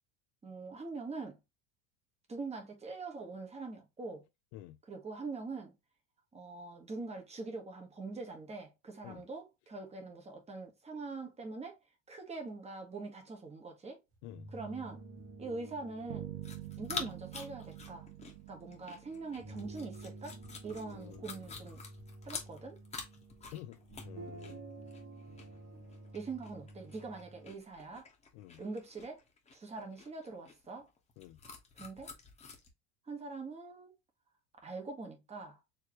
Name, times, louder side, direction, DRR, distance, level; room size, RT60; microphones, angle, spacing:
voice 1, 0.4-1.4 2.3-4.2 4.9-5.7 6.3-11.8 12.1-14.0 14.5-15.0 15.4-16.3 16.8-18.1 18.5-21.8 22.2-22.8 26.1-28.1 28.6-29.2 29.5-30.9 31.8-32.1 33.1-33.9 34.6-35.6, right 3 dB, 15° right, 1.4 m, -43 dB
sound 1, 14.1-27.5, right 2 dB, 50° right, 2.4 m, -51 dB
voice 2, 14.2-14.5 20.9-21.6 23.5-24.6 28.3-28.6 31.2-31.4, left 15 dB, 70° left, 0.5 m, -50 dB
sound 2, 16.1-20.1, right 16 dB, 80° right, 0.9 m, -47 dB
sound 3, 16.4-32.7, left 4 dB, 15° left, 1.3 m, -48 dB
4.7 x 3.2 x 3.0 m
supercardioid pair, 130°, 36 cm